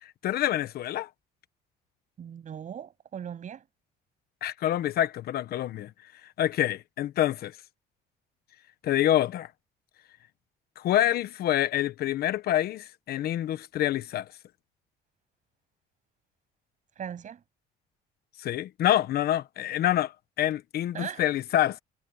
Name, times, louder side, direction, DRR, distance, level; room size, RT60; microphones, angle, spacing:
voice 1, 0.0-1.1 4.4-5.9 6.4-7.6 8.8-9.5 10.8-14.3 18.4-20.1 20.4-21.8, left 12 dB, 65° left, 1.2 m, -27 dB
voice 2, 2.2-3.6 17.0-17.4 20.9-21.2, right 8 dB, 45° right, 7.7 m, -39 dB
cardioid pair, 110°, 17 cm